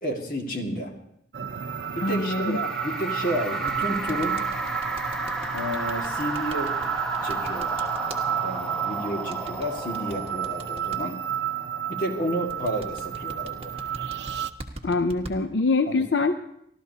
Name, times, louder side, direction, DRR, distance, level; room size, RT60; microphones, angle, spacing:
voice 1, 0.0-0.9 1.9-4.4 5.5-6.9 7.2-7.9 8.4-11.2 11.9-13.7 15.9-16.1, equal, 50° left, 2 dB, 1.9 m, -31 dB
sound 1, 1.3-14.5, right 9 dB, 85° right, 0.6 m, -31 dB
sound 2, 1.6-11.2, right 1 dB, 5° left, 1.1 m, -34 dB
voice 2, 2.0-2.6 14.8-16.4, left 3 dB, 85° left, 9 dB, 0.6 m, -24 dB
sound 3, 3.7-8.2 9.3-11.0 12.5-15.3, right 2 dB, 35° right, 1.4 m, -41 dB
29.0 x 13.0 x 2.8 m, 0.74 s
head